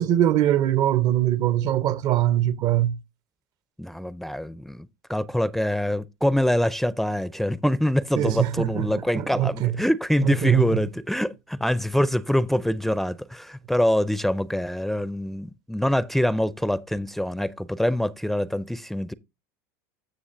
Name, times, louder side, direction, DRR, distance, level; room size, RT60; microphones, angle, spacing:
voice 1, 0.0-3.0 8.2-9.8 10.2-10.8, right 12 dB, 50° right, 0.6 m, -22 dB
voice 2, 3.8-19.1, equal, ahead, 0.4 m, -25 dB
14.5 x 6.4 x 2.5 m
supercardioid pair, 115°, 9 cm